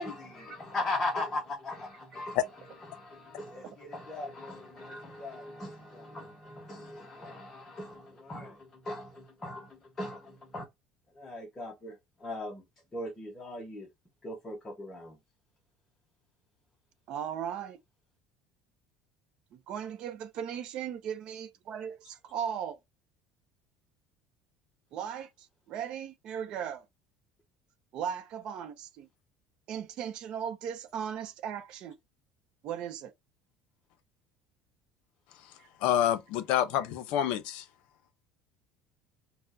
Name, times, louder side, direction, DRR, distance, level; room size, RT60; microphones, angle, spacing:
voice 1, 0.0-2.4 2.9-10.7 11.2-12.0 12.2-12.6 12.9-13.9 14.2-15.2, left 2 dB, 15° left, 0.7 m, -39 dB
voice 2, 17.1-17.8 19.5-22.8 24.9-26.8 27.9-29.1 29.7-32.0 32.6-33.1 35.6-35.7, right 8 dB, 40° right, 0.6 m, -37 dB
voice 3, 35.8-37.6, left 11 dB, 60° left, 0.7 m, -28 dB
4.3 x 2.1 x 2.6 m
cardioid pair, 175°, 2 cm